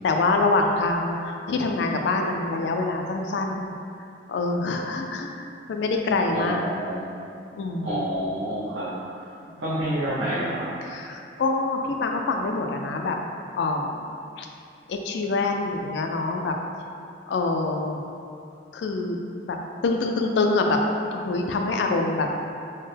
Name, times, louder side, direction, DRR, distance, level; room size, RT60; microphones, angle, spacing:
voice 1, 0.0-3.7 4.3-6.7 7.6-7.9 9.4-9.6 10.8-13.2 13.6-14.0 14.4-14.5 14.9-16.5 17.3-18.0 18.7-19.6 19.8-20.8 21.1-22.3, left 3 dB, 65° left, 3 dB, 0.3 m, -25 dB
voice 2, 6.3-7.1 7.8-9.3 9.6-10.7, right 1 dB, 70° right, -11 dB, 0.6 m, -28 dB
4.2 x 2.1 x 3.2 m, 2.5 s
head